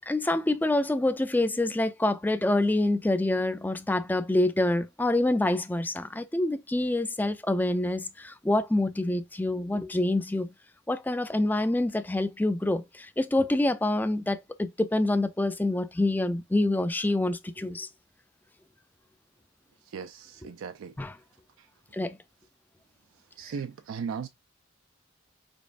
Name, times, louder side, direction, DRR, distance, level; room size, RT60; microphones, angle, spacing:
voice 1, 0.1-10.5 10.9-17.9 21.0-21.1 21.9-22.2, left 1 dB, 10° left, 0.3 m, -26 dB
voice 2, 19.8-21.0 21.6-21.7 23.1-24.3, right 6 dB, 75° right, 0.4 m, -38 dB
5.2 x 4.0 x 2.4 m
head